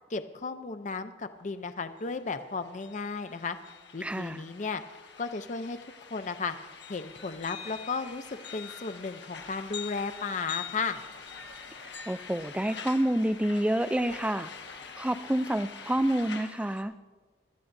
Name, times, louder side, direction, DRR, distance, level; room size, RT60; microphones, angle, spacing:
voice 1, 0.1-3.6 3.9-4.8 5.2-5.8 6.1-6.5 6.9-11.0, left 4 dB, 40° left, 10 dB, 0.5 m, -34 dB
sound 1, 1.8-1.9 2.1-16.8, left 6 dB, 70° left, 1.4 m, -45 dB
voice 2, 4.0-4.4 11.8-14.5 15.0-16.9, right 1 dB, 5° right, 12 dB, 0.4 m, -28 dB
24.5 x 13.5 x 2.6 m, 1.4 s
head